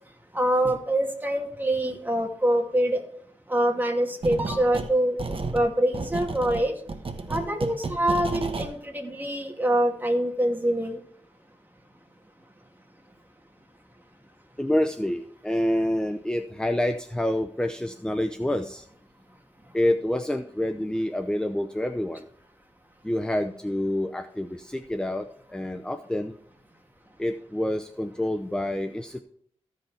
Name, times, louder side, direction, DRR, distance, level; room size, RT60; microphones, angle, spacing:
voice 1, 0.3-3.0 3.5-6.8 7.3-11.0, right 1 dB, 15° right, 2 dB, 2.5 m, -25 dB
sound 1, 4.2-4.9 5.2-8.7, right 3 dB, 50° right, 1.2 m, -32 dB
voice 2, 14.6-18.9 19.7-22.2 23.0-26.3 27.2-29.2, left 1 dB, 5° left, 8 dB, 0.6 m, -27 dB
15.0 x 5.5 x 4.3 m, 0.66 s
cardioid pair, 60°, 12 cm